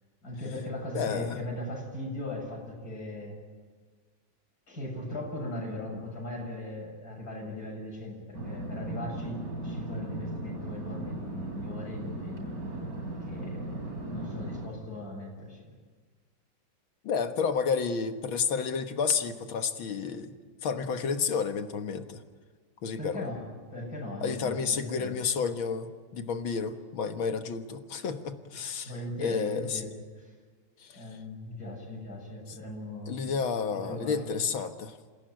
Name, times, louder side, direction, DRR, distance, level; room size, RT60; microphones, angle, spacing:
voice 1, 0.2-3.4 4.7-12.6 13.2-15.7 23.0-25.2 28.6-30.3 30.9-33.1 33.7-34.5, left 1 dB, 45° left, -1 dB, 7.9 m, -39 dB
voice 2, 0.9-1.4 17.0-20.3 20.6-22.2 22.8-23.3 24.2-28.9 29.2-29.8 30.8-31.0 32.5-32.6 33.1-35.0, left 5 dB, 85° left, 7 dB, 2.2 m, -31 dB
sound 1, 8.3-14.7, right 1 dB, 45° right, 3.5 m, -37 dB
28.0 x 17.0 x 9.2 m, 1.5 s
omnidirectional pair, 2.2 m